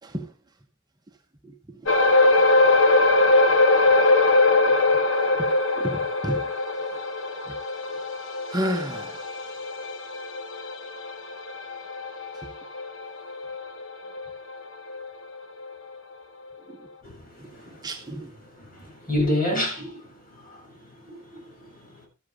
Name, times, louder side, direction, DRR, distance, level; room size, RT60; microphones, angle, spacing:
voice 1, 0.0-0.3 1.4-1.9 4.6-4.8 5.3-6.5 6.9-7.0 7.5-7.6 8.5-9.6 12.3-12.5 16.6-16.9 17.4-18.4 19.5-19.6, right 1 dB, 20° right, 1.0 m, -33 dB
sound 1, 1.9-14.6 14.9-15.1 15.6-15.7, left 2 dB, 65° left, 1.5 m, -22 dB
voice 2, 17.0-17.9 18.5-22.1, left 1 dB, 45° left, 7.1 m, -30 dB
13.5 x 10.5 x 3.6 m
head